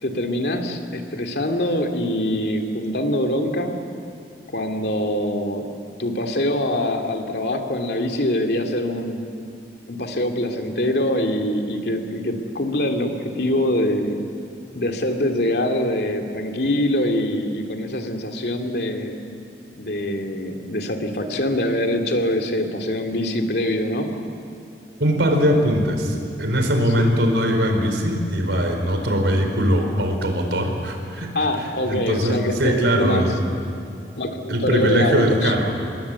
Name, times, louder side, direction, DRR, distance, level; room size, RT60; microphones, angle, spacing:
voice 1, 0.0-3.8 4.5-5.7 6.0-9.2 9.9-14.2 14.7-19.2 19.8-24.1 27.0-27.1 31.3-33.2 34.2-35.5, left 1 dB, 65° left, 4 dB, 2.6 m, -24 dB
voice 2, 25.0-31.3 31.6-33.5 34.5-35.7, equal, 90° right, 4 dB, 4.4 m, -21 dB
27.0 x 21.0 x 8.4 m, 2.6 s
head